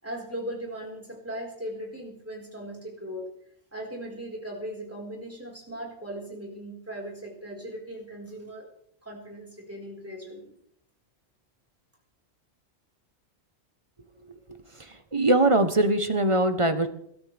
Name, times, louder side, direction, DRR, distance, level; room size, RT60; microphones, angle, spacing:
voice 1, 0.0-3.2 3.7-8.6 9.0-10.5, right 1 dB, 10° right, -2 dB, 4.6 m, -38 dB
voice 2, 14.8-16.9, right 2 dB, 30° right, 8 dB, 1.1 m, -22 dB
22.5 x 13.0 x 3.4 m, 0.74 s
omnidirectional pair, 1.2 m